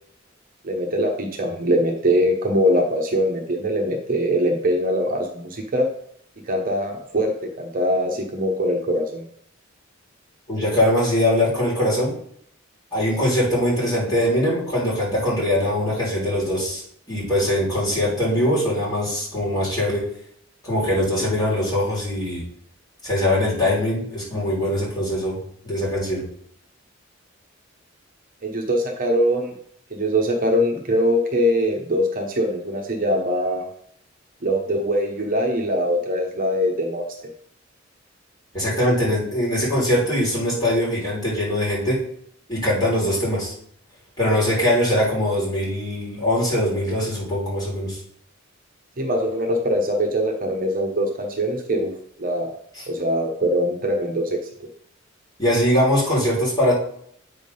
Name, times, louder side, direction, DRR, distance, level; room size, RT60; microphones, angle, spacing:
voice 1, 0.6-5.9 6.5-7.3 7.6-9.2 28.4-29.5 29.9-33.7 34.4-37.0 49.0-51.9 52.2-52.5 52.9-54.7, equal, 45° right, 1 dB, 0.9 m, -22 dB
voice 2, 10.5-12.1 12.9-16.8 17.1-20.1 20.6-22.4 23.0-25.4 25.6-26.2 38.5-42.0 42.5-43.5 44.2-48.0 52.7-52.8 55.4-56.7, left 1 dB, 20° left, -7 dB, 3.5 m, -22 dB
8.4 x 3.6 x 5.4 m, 0.66 s
head